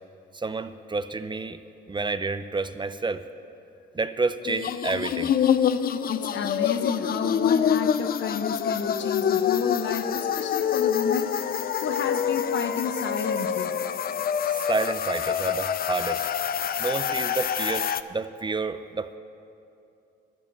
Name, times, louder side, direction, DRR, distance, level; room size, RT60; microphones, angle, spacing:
voice 1, 0.3-1.6 1.9-3.2 3.9-5.3 14.4-16.3 16.8-19.2, right 3 dB, 25° right, 11 dB, 0.6 m, -29 dB
sound 1, 4.4-18.0, left 8 dB, 50° left, 0.5 m, -26 dB
voice 2, 6.1-13.8, left 6 dB, 65° left, 8 dB, 1.0 m, -31 dB
12.5 x 10.5 x 8.8 m, 2.6 s
cardioid pair, 90°, 20 cm